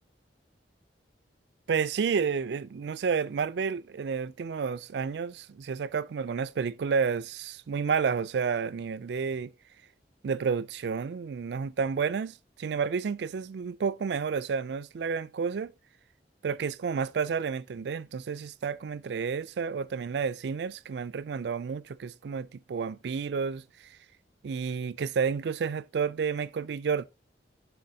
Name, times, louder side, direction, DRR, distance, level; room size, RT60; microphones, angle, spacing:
voice 1, 1.7-9.5 10.2-15.7 16.4-24.0 24.4-27.0, right 6 dB, 70° right, 0.4 m, -30 dB
10.5 x 4.0 x 2.7 m
head